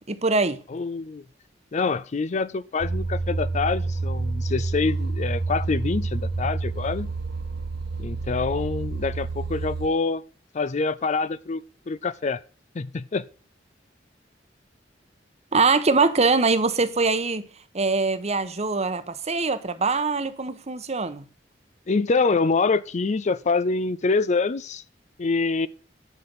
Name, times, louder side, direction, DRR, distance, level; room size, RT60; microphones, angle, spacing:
voice 1, 0.1-0.6 15.5-17.4 17.7-21.2, right 4 dB, 40° right, 1.0 m, -23 dB
voice 2, 0.7-1.2 1.7-7.1 8.0-10.2 10.5-12.4 12.7-13.2 21.9-24.8 25.2-25.7, left 4 dB, 40° left, 0.5 m, -25 dB
sound 1, 2.8-9.9, right 3 dB, 60° right, 1.0 m, -28 dB
11.0 x 6.0 x 5.5 m
head